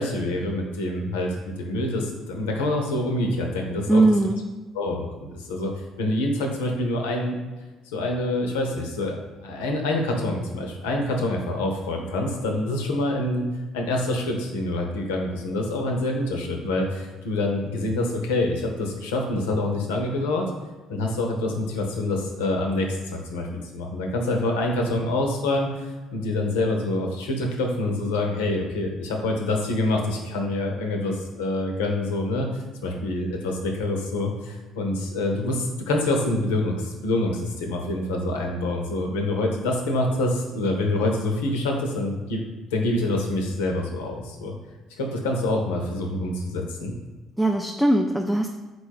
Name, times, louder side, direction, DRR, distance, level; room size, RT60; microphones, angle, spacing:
voice 1, 0.0-4.0 4.7-5.7 6.0-7.4 7.9-13.5 13.7-20.4 20.9-23.5 23.7-42.4 42.7-44.5 45.0-46.9, left 2 dB, 80° left, 2 dB, 0.6 m, -26 dB
voice 2, 3.9-4.4 47.4-48.5, right 2 dB, 5° right, 3 dB, 0.3 m, -20 dB
4.0 x 2.3 x 4.6 m, 1.2 s
hypercardioid pair, 55°, 0 cm